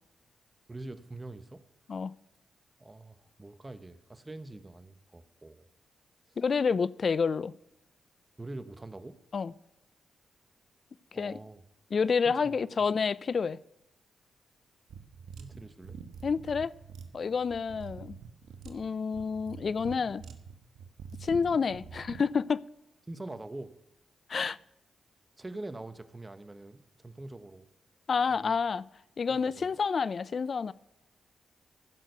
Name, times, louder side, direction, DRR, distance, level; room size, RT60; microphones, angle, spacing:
voice 1, 0.7-1.6 2.8-5.7 8.4-9.2 11.1-11.6 12.2-13.0 15.4-16.0 17.3-17.4 23.1-23.7 25.4-27.7 28.3-28.6 29.3-29.7, right 2 dB, 25° right, 1.0 m, -44 dB
voice 2, 6.4-7.5 9.3-9.5 11.1-11.4 11.9-13.6 16.2-16.7 17.1-18.2 18.6-20.2 21.2-22.6 24.3-24.6 28.1-28.8 29.2-30.7, left 5 dB, 55° left, 0.4 m, -29 dB
sound 1, 14.9-22.3, right 6 dB, 85° right, 1.1 m, -46 dB
15.0 x 6.4 x 6.7 m
cardioid pair, 60°, 0 cm